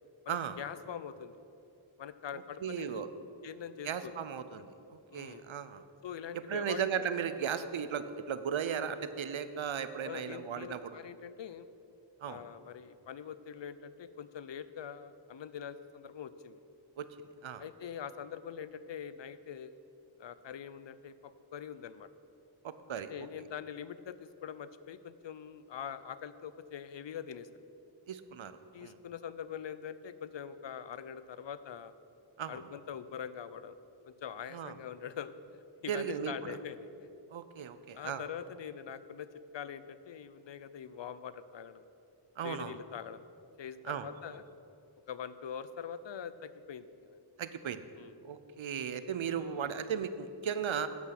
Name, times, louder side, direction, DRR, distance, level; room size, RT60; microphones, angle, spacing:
voice 1, 0.3-1.4 2.0-3.0 3.4-4.1 5.1-5.5 6.0-6.8 10.0-11.7 12.3-16.6 17.6-19.8 20.2-22.1 23.1-27.5 28.7-31.9 32.5-33.8 34.0-37.1 37.9-39.3 39.5-41.8 42.4-43.2 43.6-44.4 45.1-47.2 48.0-48.1, left 8 dB, 65° left, 14 dB, 0.6 m, -43 dB
voice 2, 2.6-3.1 3.8-5.8 6.3-11.0 12.2-12.5 17.0-17.1 17.4-17.6 22.6-23.1 28.1-29.0 32.4-32.6 34.5-34.7 35.9-36.6 37.3-38.2 42.4-42.8 43.8-44.1 47.4-47.8 48.2-50.9, right 7 dB, 70° right, 12 dB, 0.7 m, -36 dB
9.5 x 8.1 x 5.9 m, 2.7 s
cardioid pair, 45°, 48 cm